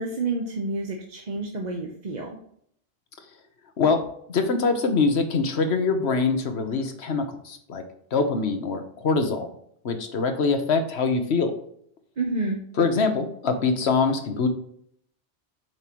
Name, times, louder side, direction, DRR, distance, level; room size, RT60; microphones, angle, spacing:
voice 1, 0.0-2.4 12.2-12.6, right 3 dB, 45° right, 0 dB, 1.0 m, -29 dB
voice 2, 4.3-7.8 8.1-9.5 9.8-11.5 12.8-14.5, left 4 dB, 75° left, 6 dB, 1.3 m, -24 dB
7.8 x 5.5 x 3.0 m, 0.66 s
omnidirectional pair, 1.1 m